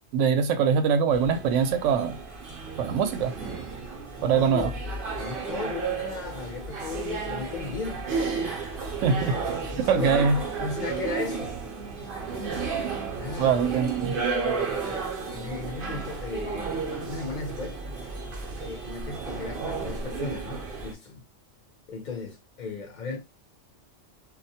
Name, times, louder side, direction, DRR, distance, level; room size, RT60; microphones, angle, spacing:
voice 1, 0.1-2.2 2.8-3.3 4.2-4.7 9.0-10.4 13.4-14.1, right 6 dB, 85° right, 0.9 m, -23 dB
sound 1, 1.1-20.9, right 4 dB, 55° right, 0.7 m, -33 dB
voice 2, 4.2-4.8 5.2-8.1 9.6-11.6 12.0-12.1 13.1-13.6 14.1-14.8 15.2-17.8 18.5-21.3 21.9-23.2, left 4 dB, 50° left, 0.6 m, -36 dB
2.3 x 2.1 x 2.7 m
omnidirectional pair, 1.2 m